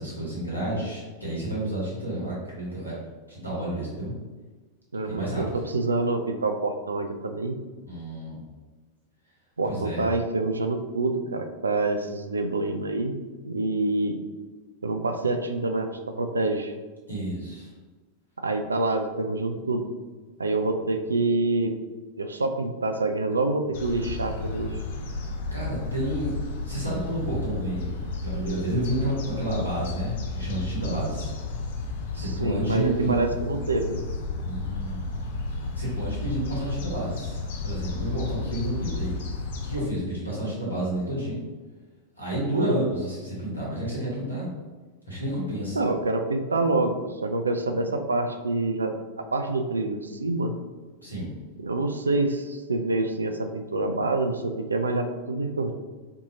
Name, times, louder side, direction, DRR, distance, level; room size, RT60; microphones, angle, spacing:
voice 1, 0.0-2.9 3.3-4.1 5.0-5.4 7.9-8.5 9.6-10.0 17.1-17.7 25.5-26.4 26.6-31.3 32.1-33.2 34.4-35.1 35.5-39.1 39.6-41.4 42.2-44.5 45.1-45.8 51.0-51.4, right 1 dB, 90° left, -7 dB, 1.5 m, -30 dB
voice 2, 4.9-7.6 9.6-13.1 13.4-14.2 14.8-16.7 18.4-19.9 20.4-21.7 22.2-24.8 32.2-34.0 42.5-42.7 45.8-50.5 51.6-55.7, right 2 dB, 75° right, 6 dB, 0.3 m, -27 dB
sound 1, 23.7-39.8, left 3 dB, 55° left, 0.5 m, -33 dB
4.4 x 2.8 x 2.8 m, 1.3 s
figure-of-eight pair, 90°, 0 cm